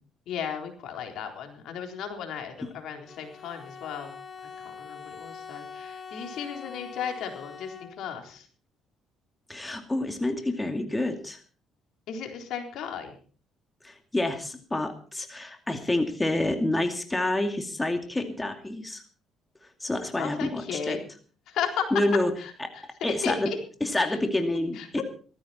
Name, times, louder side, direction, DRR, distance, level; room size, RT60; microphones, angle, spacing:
voice 1, 0.3-4.1 4.6-8.5 12.1-13.1 20.2-21.0 21.5-21.9 22.4-22.5 23.0-23.6 24.1-24.2 24.8-25.0, left 7 dB, 75° left, 4 dB, 4.0 m, -35 dB
Bowed string instrument, 3.0-8.3, left 6 dB, 30° left, 2.7 m, -43 dB
voice 2, 9.5-11.4 13.8-19.0 19.8-21.0 21.9-22.3 22.6-23.5 23.8-25.0, left 1 dB, 15° left, 6 dB, 2.3 m, -28 dB
18.0 x 14.5 x 4.3 m, 0.42 s
cardioid pair, 95°, 0 cm